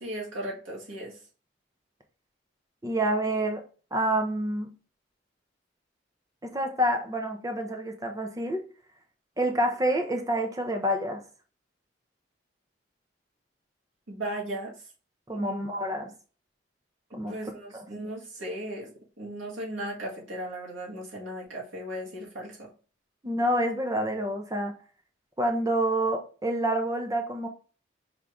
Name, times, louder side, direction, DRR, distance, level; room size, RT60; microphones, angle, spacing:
voice 1, 0.0-1.2 14.1-14.7 15.3-15.7 17.1-22.7, right 1 dB, 90° right, -4 dB, 1.7 m, -37 dB
voice 2, 2.8-3.6 3.9-4.7 6.4-8.6 9.4-11.2 15.3-16.1 17.1-17.8 23.2-24.7 25.4-27.5, right 1 dB, 20° right, 4 dB, 0.6 m, -28 dB
4.9 x 2.7 x 3.5 m, 0.38 s
head